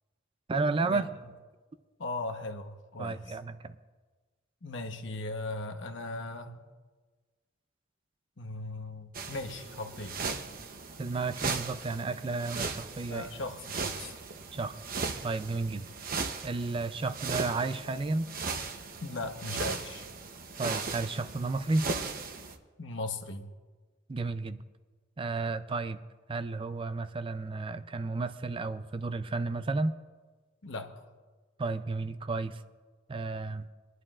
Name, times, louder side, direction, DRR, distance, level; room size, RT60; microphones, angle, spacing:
voice 1, 0.5-1.1 3.0-3.7 11.0-13.3 14.5-14.8 15.2-15.8 16.4-18.3 20.6-21.9 24.1-24.6 25.2-26.0 26.3-29.9 31.6-32.6 33.1-33.7, right 3 dB, 25° right, 11 dB, 0.4 m, -32 dB
voice 2, 2.0-3.4 4.6-6.6 8.4-10.1 13.1-14.2 19.0-20.0 22.8-23.5 30.6-30.9, left 2 dB, 65° left, 5 dB, 1.1 m, -38 dB
sound 1, 9.1-22.5, right 4 dB, 50° right, 0.8 m, -37 dB
22.5 x 11.0 x 2.4 m, 1.4 s
head